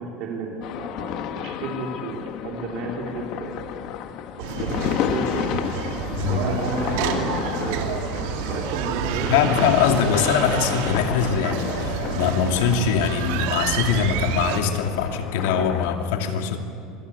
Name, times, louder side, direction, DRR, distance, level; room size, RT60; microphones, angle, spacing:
voice 1, 0.0-3.6 4.4-5.5 6.2-9.4, right 3 dB, 55° right, -1 dB, 4.3 m, -32 dB
sound 1, 0.6-16.0, left 9 dB, 55° left, 1.4 m, -31 dB
sound 2, 4.4-14.6, right 7 dB, 80° right, 2.7 m, -29 dB
voice 2, 6.1-6.5 9.3-16.6, left 7 dB, 90° left, 4 dB, 2.5 m, -22 dB
26.5 x 22.5 x 8.4 m, 2.5 s
cardioid pair, 145°, 0 cm